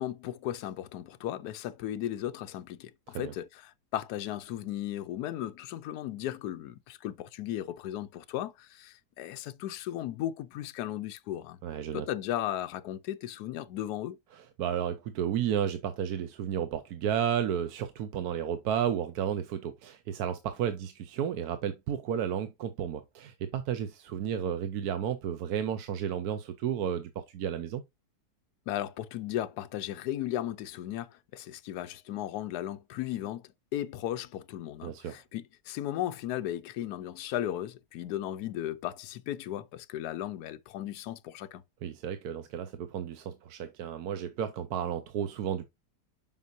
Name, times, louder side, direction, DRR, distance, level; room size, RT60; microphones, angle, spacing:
voice 1, 0.0-11.6 11.9-14.2 28.7-41.6, left 12 dB, 75° left, 1.1 m, -36 dB
voice 2, 11.6-12.0 14.3-27.8 34.8-35.2 41.8-45.7, right 9 dB, 70° right, 1.2 m, -32 dB
7.3 x 5.6 x 2.6 m
omnidirectional pair, 1.8 m